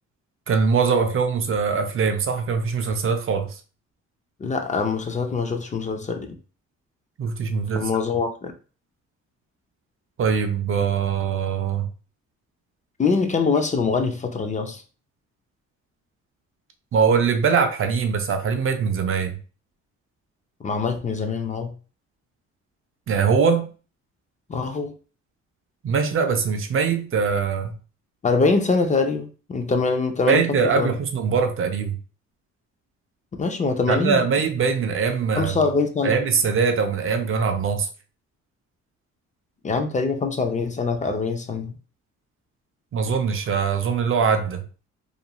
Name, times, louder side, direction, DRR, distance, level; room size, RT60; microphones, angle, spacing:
voice 1, 0.5-3.6 7.2-7.9 10.2-11.9 16.9-19.4 23.1-23.7 25.8-27.8 30.3-32.0 33.9-35.6 36.0-37.9 42.9-44.6, right 5 dB, 45° right, 0.5 m, -22 dB
voice 2, 4.4-6.4 7.7-8.5 13.0-14.8 20.6-21.7 24.5-24.9 28.2-30.9 33.4-34.2 35.4-36.2 39.6-41.7, left 4 dB, 25° left, 0.4 m, -24 dB
2.4 x 2.2 x 2.9 m
cardioid pair, 90°, 30 cm